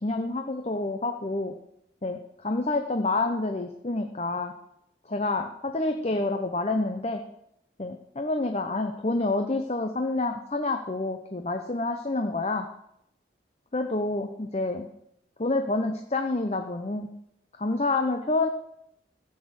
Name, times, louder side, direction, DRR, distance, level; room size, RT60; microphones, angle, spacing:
voice 1, 0.0-1.5 2.0-4.5 5.1-7.2 7.8-12.7 13.7-14.9 15.4-17.1 17.5-18.5, left 2 dB, 35° left, 5 dB, 0.8 m, -28 dB
14.0 x 6.4 x 8.0 m, 0.77 s
head